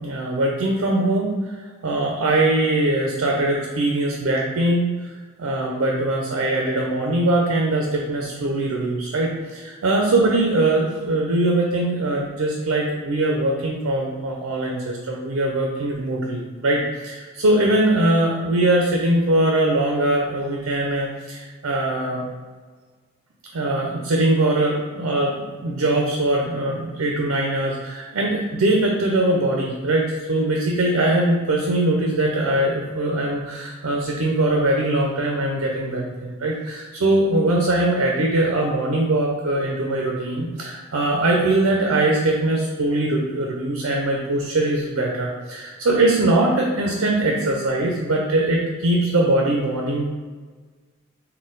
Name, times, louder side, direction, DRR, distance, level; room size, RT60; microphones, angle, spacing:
voice 1, 0.0-1.6 1.8-4.9 5.4-22.2 23.5-50.1, right 1 dB, 70° right, 0 dB, 0.5 m, -21 dB
4.0 x 2.2 x 3.8 m, 1.4 s
head